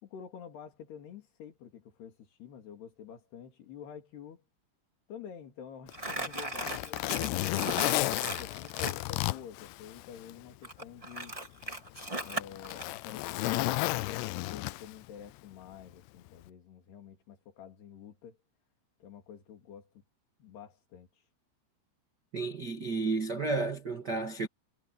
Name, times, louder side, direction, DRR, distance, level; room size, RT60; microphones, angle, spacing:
voice 1, 0.0-4.4 5.1-7.4 8.0-11.4 12.2-18.4 19.0-20.0 20.4-21.3, left 8 dB, 60° left, 4.9 m, -48 dB
Zipper (clothing), 5.9-10.4 10.8-10.9 11.6-15.1 16.3-16.5, left 19 dB, 80° left, 2.5 m, -33 dB
Crumpling crinkling, 5.9-9.0 10.6-12.9, right 2 dB, 15° right, 1.4 m, -37 dB
voice 2, 22.3-24.5, right 3 dB, 85° right, 0.9 m, -32 dB
omnidirectional pair, 5.3 m